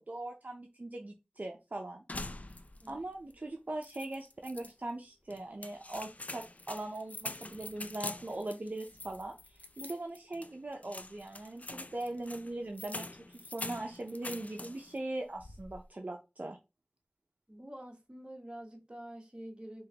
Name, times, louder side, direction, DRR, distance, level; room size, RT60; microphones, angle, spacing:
voice 1, 0.0-2.0 2.9-13.1 13.3-16.6, right 2 dB, 55° right, 0.6 m, -40 dB
sound 1, 2.1-3.0 3.3-3.4 3.8-4.7 5.3-15.0 15.3-15.9, left 2 dB, 50° left, 0.4 m, -45 dB
voice 2, 17.5-19.9, right 1 dB, 30° right, 1.2 m, -47 dB
3.7 x 3.0 x 2.9 m
wide cardioid pair, 45°, 3 cm